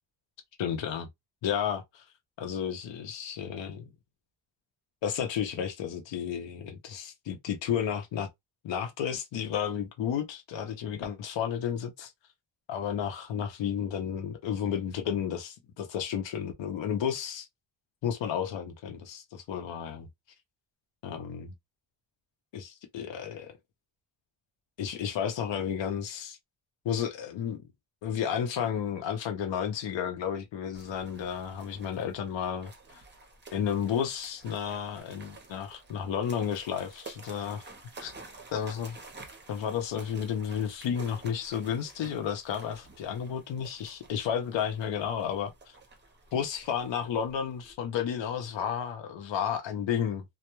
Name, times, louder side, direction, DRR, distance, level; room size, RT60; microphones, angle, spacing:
voice 1, 0.6-1.1 1.4-2.0 2.4-3.8 5.0-8.3 8.6-12.1 12.7-17.5 18.0-20.1 21.0-21.5 22.5-23.6 24.8-26.4 26.8-27.6 28.0-32.7 33.5-37.6 38.0-38.1 38.5-39.0 39.5-45.5 46.3-50.2, left 8 dB, 90° left, 0.7 m, -32 dB
sound 1, 30.7-47.7, right 3 dB, 25° right, 0.7 m, -51 dB
2.2 x 2.1 x 2.9 m
wide cardioid pair, 140°, 43 cm